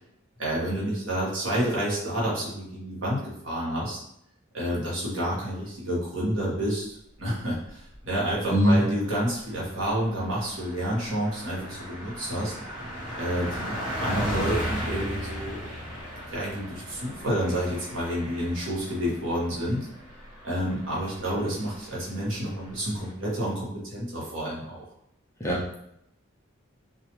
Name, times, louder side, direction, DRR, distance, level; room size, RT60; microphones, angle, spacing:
voice 1, 0.4-4.0 4.5-6.9 7.2-12.5 13.2-15.6 16.3-19.9 20.4-24.8, equal, 75° right, -5 dB, 1.0 m, -29 dB
Car passing by, 7.7-8.1 8.4-8.6 8.8-23.1, equal, 5° right, 1.0 m, -37 dB
voice 2, 8.5-8.8 25.4-25.8, equal, 15° left, -4 dB, 0.4 m, -21 dB
2.3 x 2.1 x 2.9 m, 0.75 s
head